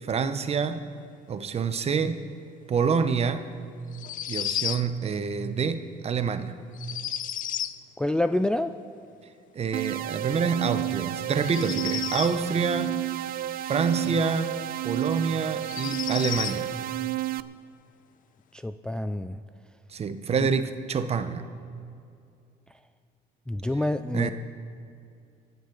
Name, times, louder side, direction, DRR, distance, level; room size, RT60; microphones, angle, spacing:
voice 1, 0.0-0.8 1.3-2.2 2.7-3.5 4.3-6.6 9.5-13.0 13.6-14.6 14.8-16.7 19.9-21.5 24.1-24.3, right 5 dB, 40° right, 10 dB, 0.9 m, -27 dB
sound 1, 3.9-4.9 6.7-7.8 11.4-12.4 14.6-14.7 15.6-16.6, left 10 dB, 50° left, 0.6 m, -32 dB
voice 2, 8.0-8.7 18.6-19.4 23.5-24.3, left 1 dB, 5° left, 9 dB, 0.3 m, -27 dB
sound 2, 9.7-17.4, right 15 dB, 60° right, 0.5 m, -31 dB
25.0 x 9.4 x 3.9 m, 2.4 s
cardioid pair, 110°, 17 cm